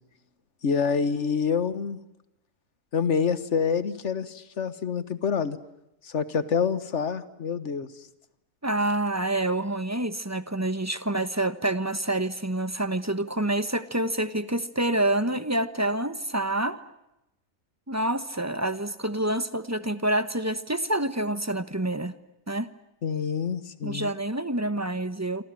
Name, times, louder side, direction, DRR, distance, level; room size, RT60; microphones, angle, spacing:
voice 1, 0.6-2.0 2.9-5.6 6.0-8.0 23.0-24.1, left 6 dB, 50° left, 14 dB, 1.7 m, -27 dB
voice 2, 8.6-16.8 17.9-22.1 22.5-22.7 23.8-25.4, right 1 dB, 10° right, 12 dB, 1.0 m, -27 dB
27.5 x 26.0 x 7.7 m, 0.89 s
omnidirectional pair, 1.6 m